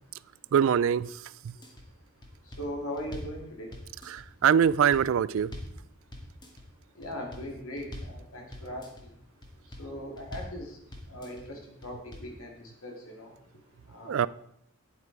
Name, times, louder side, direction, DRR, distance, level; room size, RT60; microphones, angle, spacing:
voice 1, 0.5-1.1 4.1-5.5 14.1-14.3, right 8 dB, 60° right, 19 dB, 0.3 m, -23 dB
sound 1, 1.4-1.8 2.2-3.4 3.7-4.3 4.6-5.8 6.1-6.7 7.0-7.5 7.8-8.2 8.5-9.0 9.4-9.9 10.2-10.6 10.9-11.4 11.8-12.3, left 1 dB, 20° left, 1.6 m, -43 dB
voice 2, 2.4-3.7 6.9-9.1 9.7-10.8 11.1-13.4 13.9-14.3, equal, 75° left, 1 dB, 2.6 m, -40 dB
9.6 x 8.1 x 4.7 m, 0.72 s
head